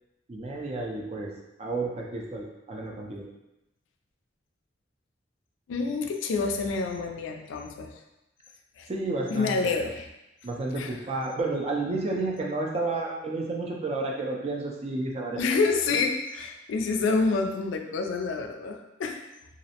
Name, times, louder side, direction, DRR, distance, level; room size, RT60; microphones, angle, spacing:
voice 1, 0.3-1.3 1.6-3.3 8.9-9.8 10.4-15.4, right 2 dB, 35° right, 0 dB, 0.3 m, -31 dB
voice 2, 5.7-8.0 8.8-8.9 9.3-10.1 10.7-10.9 15.4-19.2, left 4 dB, 80° left, 3 dB, 0.3 m, -28 dB
2.5 x 2.0 x 2.7 m, 0.95 s
head